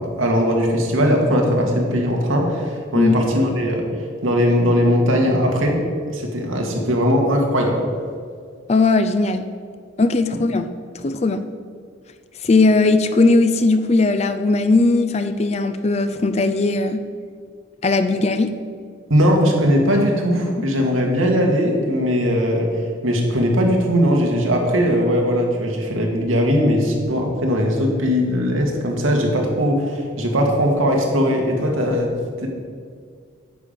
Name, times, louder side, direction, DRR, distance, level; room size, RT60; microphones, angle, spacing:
voice 1, 0.0-3.9 4.2-5.8 6.1-7.8 10.3-10.4 19.1-22.7 23.0-32.1 32.4-32.5, equal, 85° right, 1 dB, 1.8 m, -19 dB
voice 2, 8.7-9.5 10.0-10.7 10.9-11.4 12.4-17.1 17.8-18.6 20.6-20.7, left 3 dB, 30° left, 9 dB, 0.4 m, -18 dB
9.5 x 5.2 x 7.6 m, 2.1 s
head